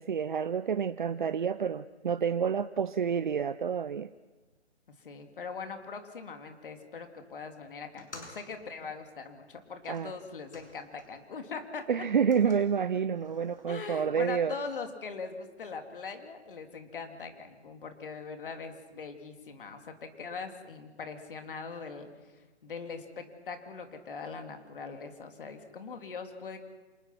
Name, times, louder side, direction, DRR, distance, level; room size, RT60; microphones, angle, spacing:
voice 1, 0.0-4.1 9.9-10.1 11.9-14.5, right 7 dB, 45° right, 13 dB, 0.6 m, -29 dB
voice 2, 5.0-11.8 13.7-26.6, left 5 dB, 50° left, 6 dB, 3.1 m, -41 dB
sound 1, 7.9-11.3 11.6-13.6, left 2 dB, 90° left, 6.4 m, -54 dB
27.0 x 19.5 x 6.0 m, 1.2 s
hypercardioid pair, 155°, 34 cm